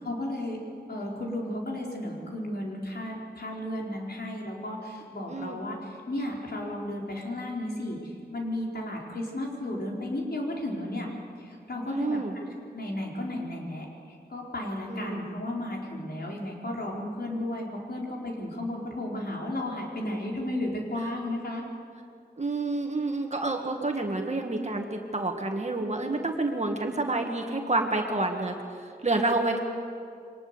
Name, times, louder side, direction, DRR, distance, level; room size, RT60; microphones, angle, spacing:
voice 1, 0.0-0.6 0.9-11.1 11.4-12.2 12.7-21.6, left 1 dB, 70° left, -2 dB, 4.5 m, -34 dB
voice 2, 11.9-12.3 14.9-15.2 22.4-28.6 29.0-29.6, right 2 dB, 40° right, 2 dB, 1.8 m, -28 dB
23.5 x 20.0 x 7.0 m, 2.3 s
wide cardioid pair, 85°, 17 cm